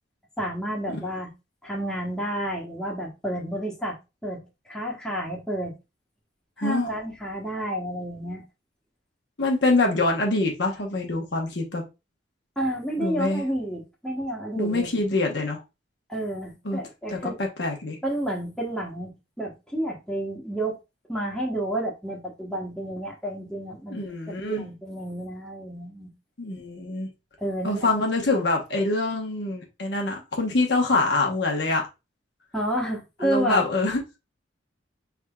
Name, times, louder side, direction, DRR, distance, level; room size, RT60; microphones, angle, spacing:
voice 1, 0.4-1.3 1.6-4.0 4.2-5.7 6.6-8.4 12.6-14.9 16.1-17.4 18.0-20.8 21.1-26.1 27.4-27.9 32.5-33.7, right 1 dB, 5° left, 1.0 m, -30 dB
voice 2, 6.6-6.9 9.4-11.8 13.0-13.4 14.6-15.6 16.6-16.8 17.1-18.0 23.9-24.6 26.4-27.1 27.6-31.8 33.2-34.2, left 2 dB, 60° left, 1.0 m, -25 dB
5.1 x 3.5 x 2.3 m
head